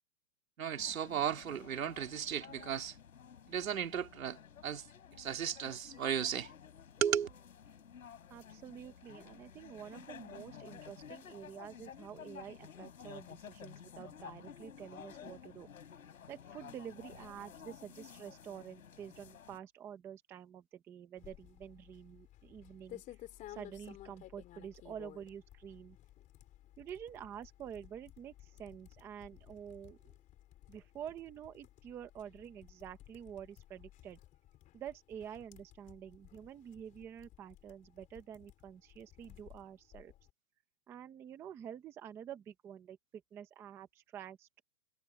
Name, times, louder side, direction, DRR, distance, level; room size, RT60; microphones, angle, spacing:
voice 1, 0.6-2.9 3.5-4.4 4.6-4.8 5.2-6.5 7.0-7.3, right 9 dB, 85° right, 3.2 m, -35 dB
sound 1, 0.8-19.6, left 8 dB, 85° left, 5.2 m, -53 dB
voice 2, 8.3-15.7 16.3-23.2 23.5-26.0 26.8-30.2 30.7-34.2 34.7-40.1 40.9-43.0 43.3-44.6, right 9 dB, 5° right, 0.6 m, -48 dB
sound 2, 21.2-40.3, left 14 dB, 20° left, 3.5 m, -56 dB
hypercardioid pair, 160°, 40 cm